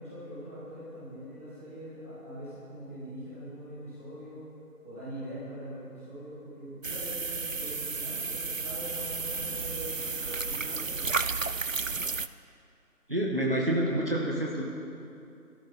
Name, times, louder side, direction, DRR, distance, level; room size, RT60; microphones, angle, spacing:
voice 1, 0.0-4.4 4.8-10.0 10.4-11.1, equal, 10° left, -14 dB, 2.4 m, -42 dB
sound 1, 6.8-12.3, right 4 dB, 60° right, 0.5 m, -32 dB
voice 2, 13.1-14.6, right 1 dB, 35° right, -3 dB, 1.6 m, -28 dB
25.0 x 13.0 x 4.2 m, 2.7 s
figure-of-eight pair, 170°, 46 cm